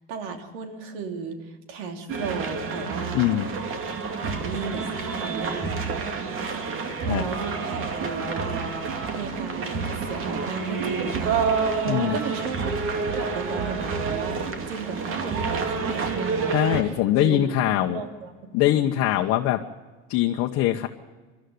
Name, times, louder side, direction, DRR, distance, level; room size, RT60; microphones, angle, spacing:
voice 1, 0.1-3.3 4.3-6.1 7.0-17.5 17.9-18.3 18.7-18.8, right 5 dB, 80° right, 5 dB, 3.0 m, -35 dB
sound 1, 2.1-16.8, right 4 dB, 45° right, 2.5 m, -28 dB
voice 2, 3.1-3.5 7.1-7.2 11.9-12.2 16.5-18.0 18.5-19.6 20.1-20.9, left 13 dB, 60° left, 2 dB, 1.2 m, -22 dB
22.5 x 13.0 x 9.6 m, 1.3 s
supercardioid pair, 120°, 29 cm